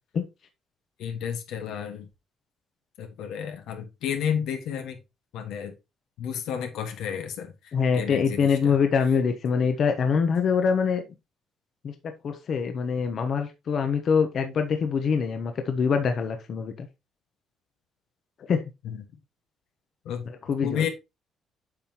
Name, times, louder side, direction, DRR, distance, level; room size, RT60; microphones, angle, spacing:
voice 1, 1.0-2.1 3.0-5.0 5.3-5.7 6.2-8.8 18.8-19.0 20.0-20.3 20.6-20.9, left 8 dB, 85° left, 1.5 m, -32 dB
voice 2, 7.7-11.0 11.8-11.9 12.2-16.9 18.5-18.6 20.3-20.8, left 6 dB, 50° left, 1.0 m, -24 dB
8.5 x 5.5 x 3.0 m
cardioid pair, 120°, 0 cm